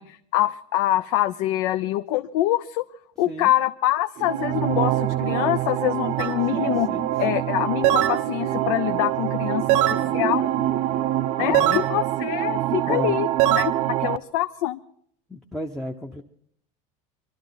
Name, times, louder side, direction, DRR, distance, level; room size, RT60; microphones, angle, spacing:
voice 1, 0.0-2.8 3.2-6.9 7.2-10.5 11.4-14.8, left 15 dB, 75° left, 9 dB, 0.6 m, -25 dB
sound 1, 4.2-14.2, right 13 dB, 45° right, 0.5 m, -25 dB
sound 2, 6.2-6.4 7.8-8.2 9.7-10.1 11.5-11.9 13.4-13.7, right 13 dB, 85° right, 0.8 m, -20 dB
voice 2, 6.5-7.4 9.9-10.4 11.4-11.8 12.9-13.2 15.3-16.2, left 1 dB, 5° left, 0 dB, 0.7 m, -34 dB
24.5 x 12.5 x 4.0 m, 0.65 s
cardioid pair, 165°, 15 cm